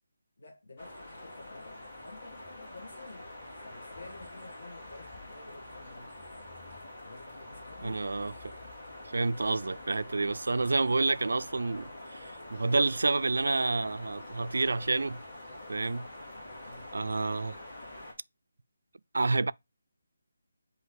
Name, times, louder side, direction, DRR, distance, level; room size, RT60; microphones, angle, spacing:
voice 1, 0.4-3.3 3.6-6.8 7.0-8.1 16.6-16.9, left 3 dB, 50° left, 1.3 m, -51 dB
sound 1, 0.8-18.1, left 1 dB, 25° left, 2.8 m, -46 dB
voice 2, 7.8-8.5 9.0-15.2 15.7-16.1 16.9-17.6 19.1-19.5, right 3 dB, 65° right, 0.3 m, -29 dB
8.1 x 2.7 x 4.6 m
hypercardioid pair, 180°, 0 cm